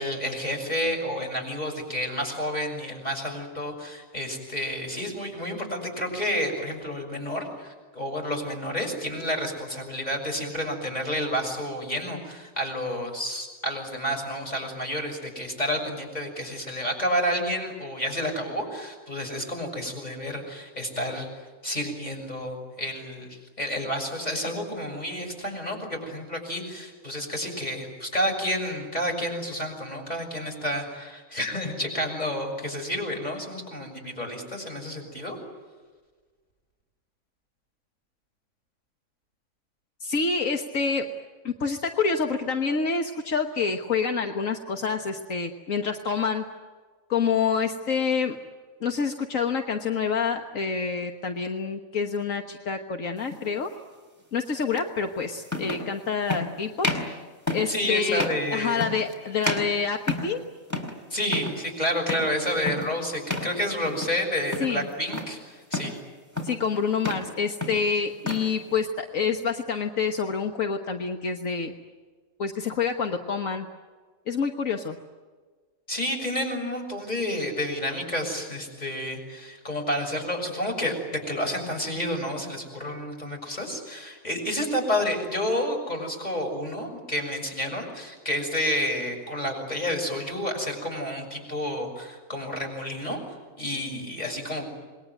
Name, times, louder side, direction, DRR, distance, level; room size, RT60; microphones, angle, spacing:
voice 1, 0.0-21.3 21.6-35.4 57.7-58.8 61.1-65.9 75.9-93.2 93.6-94.7, equal, 30° left, 2 dB, 6.8 m, -30 dB
voice 2, 40.0-41.1 41.4-46.4 47.1-48.4 48.8-53.7 54.3-56.9 57.5-58.2 58.5-60.4 64.6-64.9 66.4-71.7 72.4-73.7 74.3-75.0, left 5 dB, 75° left, 5 dB, 1.7 m, -27 dB
sound 1, 53.3-53.5 54.8-54.9 55.5-55.9 56.3-56.5 56.8-57.1 57.5-57.8 58.2-58.5 58.8-59.1 59.4-60.4 60.7-61.0 61.2-61.6 62.1-62.3 62.7-62.9 63.3-63.5 63.9-64.2 64.5-65.3 65.7-66.0 66.4-66.7 67.0-67.3 67.6-68.5, left 2 dB, 10° left, 4.1 m, -30 dB
27.5 x 21.5 x 9.4 m, 1.4 s
omnidirectional pair, 1.4 m